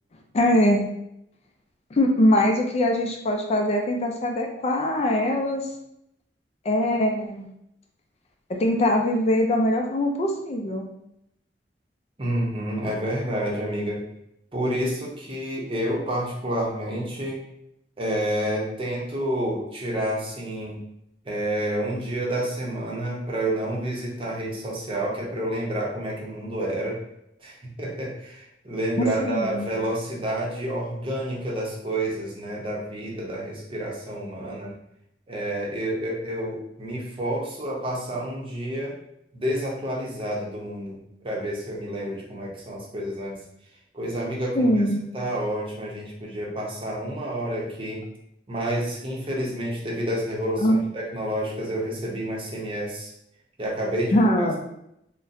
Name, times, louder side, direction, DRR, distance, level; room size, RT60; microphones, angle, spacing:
voice 1, 0.3-0.9 2.0-5.6 6.7-7.5 8.6-10.9 29.0-29.7 44.6-45.0 50.6-50.8 54.1-54.6, left 1 dB, 35° left, 2 dB, 0.4 m, -22 dB
voice 2, 12.2-14.0 14.5-17.4 18.0-20.8 21.3-27.0 27.4-34.7 35.3-38.9 39.3-41.0 41.2-43.4 43.9-44.7 45.1-48.0 48.5-53.1 53.6-54.2, right 1 dB, 30° right, -3 dB, 0.7 m, -29 dB
3.9 x 2.1 x 2.5 m, 0.79 s
head